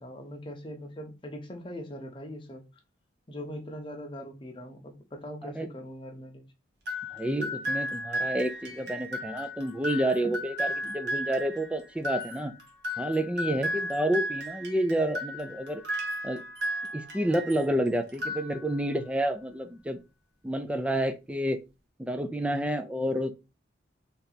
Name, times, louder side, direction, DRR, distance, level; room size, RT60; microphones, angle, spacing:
voice 1, 0.0-2.7 3.3-6.5, equal, 25° left, 0.8 m, -41 dB
sound 1, 6.9-17.7 18.1-19.0, equal, 60° right, 1.1 m, -35 dB
voice 2, 7.1-12.5 13.0-15.8 16.2-16.4 16.9-20.0 20.4-21.6 22.0-23.4, right 1 dB, 5° right, 0.3 m, -29 dB
3.3 x 2.9 x 3.9 m
head